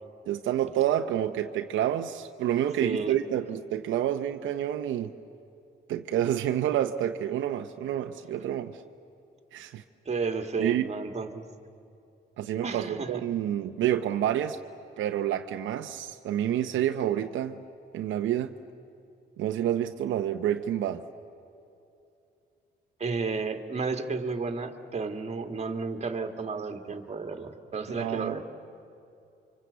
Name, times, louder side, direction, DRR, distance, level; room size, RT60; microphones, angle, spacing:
voice 1, 0.3-5.1 5.9-8.8 9.5-9.8 10.6-10.9 12.4-14.6 15.0-17.6 17.9-18.5 19.4-21.0 28.0-28.4, right 11 dB, 80° right, 6 dB, 0.9 m, -28 dB
voice 2, 2.8-3.1 10.1-11.4 12.6-13.2 23.0-28.4, right 4 dB, 35° right, 6 dB, 2.2 m, -32 dB
28.0 x 25.0 x 8.2 m, 2.7 s
cardioid pair, 90°, 20 cm